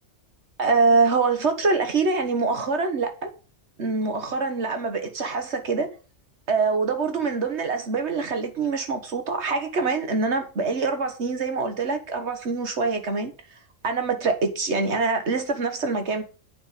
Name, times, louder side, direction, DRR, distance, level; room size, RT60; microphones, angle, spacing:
voice 1, 0.6-3.3 3.8-5.9 6.5-13.3 13.8-16.2, right 4 dB, 60° right, 1.8 m, -24 dB
8.8 x 5.4 x 7.3 m
omnidirectional pair, 1.3 m